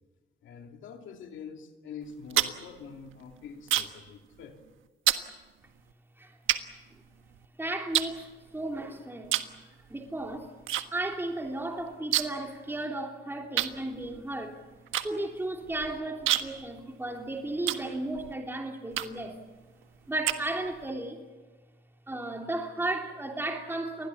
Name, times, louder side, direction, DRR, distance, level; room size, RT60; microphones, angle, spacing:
voice 1, 0.4-4.6, left 6 dB, 75° left, 4 dB, 2.6 m, -45 dB
sound 1, 2.0-4.1 4.4-4.7 5.1-5.3 5.9-6.0 6.5-7.4 7.9-8.8 9.2-9.6 9.9-10.8 11.1-11.2 11.5-12.5 12.8-12.9 13.6-18.3 18.9-19.3 19.8-20.9, right 12 dB, 90° right, 1.5 m, -30 dB
voice 2, 7.6-9.3 9.9-10.6 10.9-14.6 15.0-19.4 20.1-21.2 22.1-24.1, right 2 dB, 10° right, 2 dB, 3.3 m, -34 dB
28.5 x 21.0 x 7.1 m, 1.3 s
cardioid pair, 90°, 20 cm